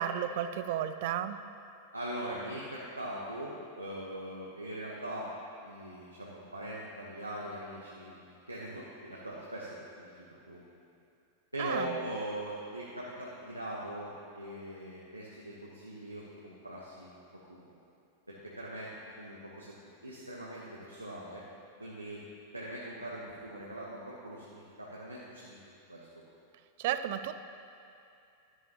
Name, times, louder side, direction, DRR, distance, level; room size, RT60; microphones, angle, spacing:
voice 1, 0.0-1.4 11.6-12.0 26.8-27.3, right 10 dB, 50° right, 11 dB, 0.4 m, -33 dB
voice 2, 1.9-5.3 5.6-10.7 11.5-17.2 17.5-17.7 18.3-18.9 19.2-21.4 21.8-22.2 22.5-25.6 25.9-26.1, right 1 dB, 85° right, -5 dB, 1.0 m, -41 dB
11.5 x 11.0 x 2.9 m, 2.6 s
figure-of-eight pair, 90°, 0 cm